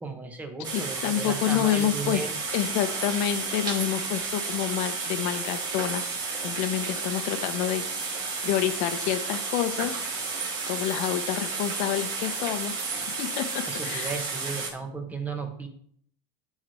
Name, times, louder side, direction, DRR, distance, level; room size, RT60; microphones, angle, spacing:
voice 1, 0.0-2.3 13.7-15.7, right 4 dB, 10° right, 4 dB, 1.6 m, -35 dB
sound 1, 0.6-14.7, right 4 dB, 35° right, 3.6 m, -32 dB
voice 2, 0.7-2.2 2.5-6.0 6.4-10.0 10.7-14.2, left 11 dB, 65° left, 9 dB, 1.3 m, -28 dB
14.0 x 4.8 x 4.6 m, 0.62 s
cardioid pair, 150°, 12 cm